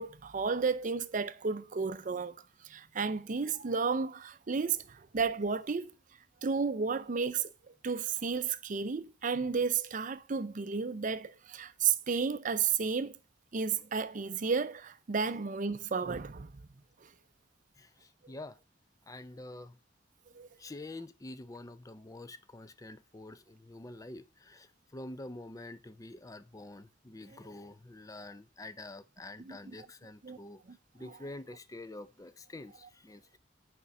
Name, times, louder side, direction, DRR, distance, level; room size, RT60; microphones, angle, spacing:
voice 1, 0.0-2.4 2.6-5.9 6.4-7.5 7.8-13.1 13.5-16.5 20.4-20.5 29.4-29.6 30.2-30.4 30.7-31.1, right 5 dB, 40° right, 0.5 m, -32 dB
voice 2, 17.8-18.6 19.1-19.8 20.6-30.6 30.9-33.4, left 2 dB, 20° left, 0.5 m, -47 dB
6.9 x 5.2 x 5.8 m
head